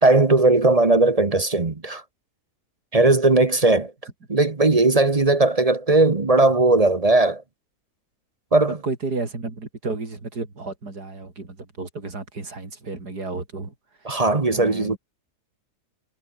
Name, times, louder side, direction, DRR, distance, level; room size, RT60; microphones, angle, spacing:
voice 1, 0.0-2.0 2.9-3.9 4.3-7.4 8.5-8.8 14.0-15.0, right 2 dB, 25° right, 1.1 m, -18 dB
voice 2, 8.8-13.7 14.5-15.0, right 3 dB, 80° right, 4.9 m, -32 dB
omnidirectional pair, 1.7 m